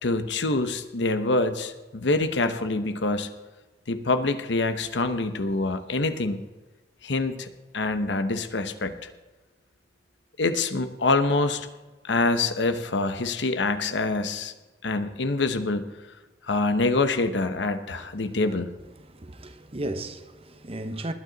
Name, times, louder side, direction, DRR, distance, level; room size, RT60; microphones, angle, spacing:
voice 1, 0.0-3.3 3.9-6.4 7.0-7.5 7.7-8.9 10.4-11.7 12.0-14.5 14.8-15.9 16.5-18.7, left 3 dB, 75° left, 0.9 m, -25 dB
voice 2, 18.0-18.3 19.0-21.1, right 1 dB, 35° right, 1.0 m, -35 dB
20.0 x 9.3 x 4.0 m
head